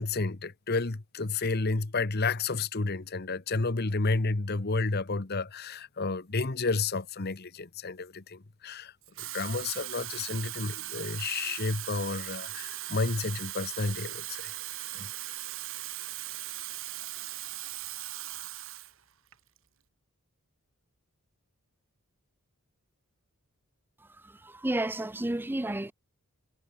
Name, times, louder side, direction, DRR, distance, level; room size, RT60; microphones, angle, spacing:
voice 1, 0.0-14.5 14.9-15.1, left 3 dB, 45° left, 1.1 m, -31 dB
Water tap faucet / Fill (with liquid), 9.0-18.9 19.3-19.6, right 15 dB, 65° right, 1.7 m, -39 dB
voice 2, 24.0-25.9, right 1 dB, 10° right, 0.5 m, -32 dB
head